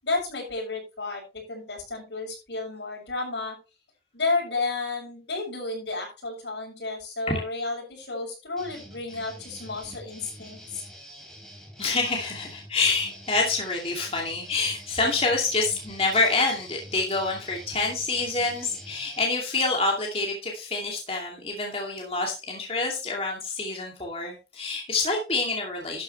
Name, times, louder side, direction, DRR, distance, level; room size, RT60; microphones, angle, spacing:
voice 1, 0.0-3.6 4.1-10.8, left 3 dB, 85° left, 0 dB, 7.0 m, -32 dB
sound 1, 8.6-19.2, equal, ahead, 3.4 m, -46 dB
voice 2, 11.8-26.0, left 3 dB, 35° left, 0 dB, 2.5 m, -27 dB
12.0 x 9.4 x 3.2 m, 0.28 s
head